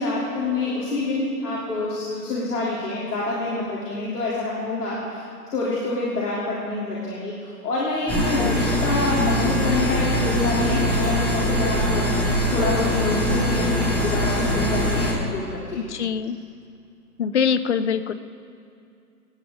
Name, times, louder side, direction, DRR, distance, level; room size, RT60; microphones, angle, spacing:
voice 1, 0.0-5.2 5.5-12.1 12.5-15.8, left 2 dB, 65° left, -6 dB, 3.6 m, -27 dB
sound 1, 8.1-15.1, left 1 dB, 5° left, 2.0 m, -22 dB
voice 2, 15.8-16.4 17.2-18.1, left 7 dB, 45° left, 12 dB, 0.7 m, -24 dB
26.0 x 10.0 x 3.9 m, 2.5 s
hypercardioid pair, 150°, 49 cm